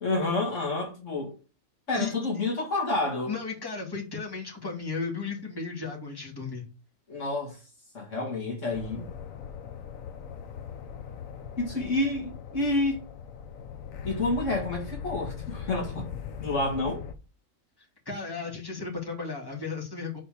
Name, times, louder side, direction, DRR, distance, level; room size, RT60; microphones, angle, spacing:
voice 1, 0.0-1.4 1.9-3.4 7.1-7.6 7.9-9.1 11.6-13.0 14.0-16.1 16.4-17.0, left 2 dB, 65° left, 2.4 m, -29 dB
voice 2, 3.3-6.6 18.1-20.2, left 4 dB, 15° left, 2.3 m, -35 dB
sound 1, 8.7-17.2, left 7 dB, 85° left, 1.2 m, -40 dB
5.2 x 4.2 x 5.9 m
omnidirectional pair, 1.4 m